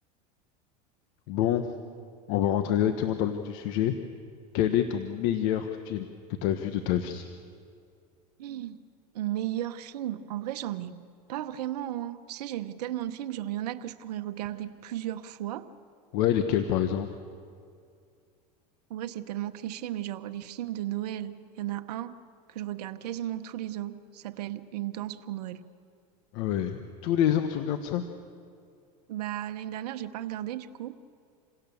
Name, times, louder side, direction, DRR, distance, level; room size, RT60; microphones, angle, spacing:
voice 1, 1.3-1.7 2.3-4.0 4.5-6.1 6.4-7.2 16.1-17.1 26.3-28.0, left 10 dB, 60° left, 8 dB, 1.2 m, -27 dB
voice 2, 8.4-8.8 9.1-11.0 11.3-15.7 18.9-22.1 22.5-25.6 29.1-31.0, right 13 dB, 75° right, 8 dB, 1.0 m, -35 dB
27.5 x 17.0 x 7.1 m, 2.4 s
supercardioid pair, 105°, 20 cm